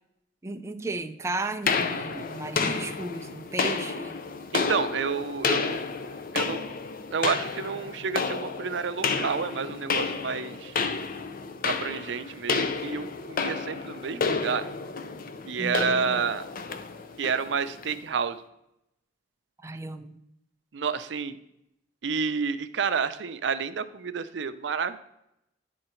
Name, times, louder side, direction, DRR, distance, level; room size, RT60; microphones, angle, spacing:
voice 1, 0.4-4.2 15.6-16.3 19.6-20.2, right 2 dB, 15° right, 7 dB, 0.4 m, -35 dB
sound 1, 1.7-18.0, left 5 dB, 50° left, 0.5 m, -31 dB
voice 2, 4.5-5.8 6.3-6.6 7.1-10.8 11.6-14.6 15.5-16.4 17.2-18.4 20.7-21.4 22.0-25.0, right 6 dB, 75° right, 11 dB, 0.5 m, -29 dB
10.0 x 3.8 x 4.3 m, 0.82 s
head